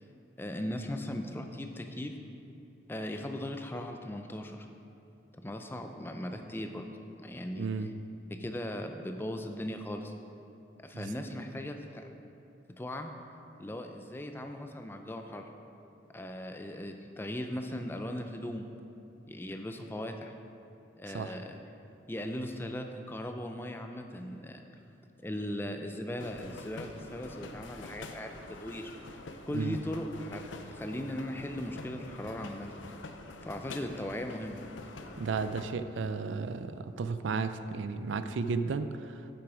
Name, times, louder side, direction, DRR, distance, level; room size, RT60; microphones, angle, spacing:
voice 1, 0.4-2.2 2.9-4.7 5.4-6.9 7.2-7.7 8.3-10.1 10.8-12.1 12.7-13.1 13.6-15.5 16.1-18.7 19.3-20.3 21.0-21.6 22.1-24.6 25.2-28.9 29.5-30.4 30.7-32.8 33.4-34.6, left 1 dB, 10° left, 5 dB, 0.4 m, -38 dB
voice 2, 7.6-7.9 10.9-11.1 21.1-21.3 29.5-29.8 35.2-39.2, right 4 dB, 85° right, 11 dB, 0.4 m, -33 dB
sound 1, 26.2-35.6, left 3 dB, 85° left, 0.6 m, -46 dB
7.8 x 7.1 x 4.9 m, 2.7 s
head